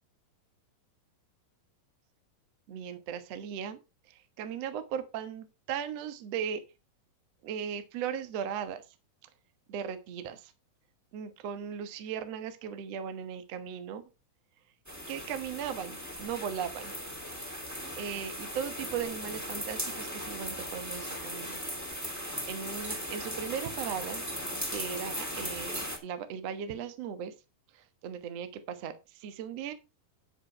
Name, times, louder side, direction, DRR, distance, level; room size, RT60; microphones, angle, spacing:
voice 1, 2.7-3.8 4.1-6.6 7.4-8.8 9.7-10.5 11.1-14.0 15.1-16.9 18.0-21.6 22.0-22.1 22.5-24.2 24.7-27.3 27.7-29.7, right 8 dB, 60° right, 9 dB, 2.0 m, -37 dB
sound 1, 14.9-26.0, equal, 5° right, 2.1 m, -38 dB
9.8 x 8.0 x 4.4 m, 0.26 s
omnidirectional pair, 4.2 m